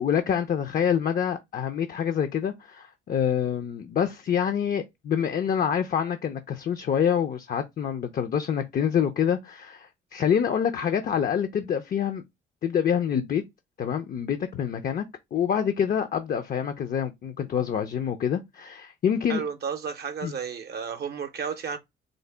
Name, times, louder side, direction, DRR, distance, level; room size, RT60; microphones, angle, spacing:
voice 1, 0.0-12.2 12.6-13.4 13.8-15.0 15.3-19.4 20.2-20.3, left 8 dB, 45° left, 0.5 m, -26 dB
voice 2, 19.3-21.8, right 6 dB, 55° right, 0.5 m, -32 dB
3.8 x 2.1 x 3.2 m
cardioid pair, 90°, 20 cm